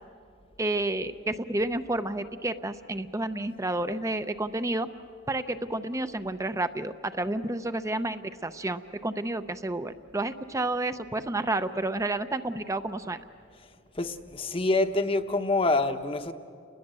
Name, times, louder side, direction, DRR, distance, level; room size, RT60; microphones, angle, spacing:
voice 1, 0.6-4.9 5.3-13.2, right 2 dB, 15° right, 10 dB, 0.6 m, -30 dB
voice 2, 14.0-16.3, left 2 dB, 30° left, 8 dB, 1.0 m, -26 dB
29.0 x 20.5 x 7.6 m, 2.3 s
head